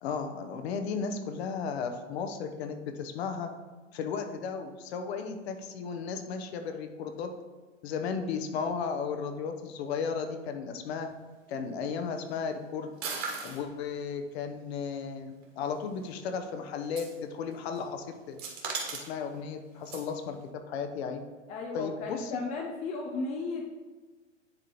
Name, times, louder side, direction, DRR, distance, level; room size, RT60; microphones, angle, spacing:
voice 1, 0.0-3.5 3.9-7.3 7.8-11.1 11.5-12.9 13.4-18.4 18.9-21.2 21.7-22.3, left 6 dB, 55° left, 6 dB, 0.9 m, -35 dB
sound 1, 13.0-13.6 15.4-15.5 16.8-17.2 17.5-17.8 18.4-19.2 19.9-20.1, right 4 dB, 35° right, 1.6 m, -36 dB
voice 2, 21.5-23.6, left 3 dB, 20° left, 1 dB, 0.4 m, -35 dB
10.0 x 3.7 x 3.0 m, 1.3 s
hypercardioid pair, 105°, 38 cm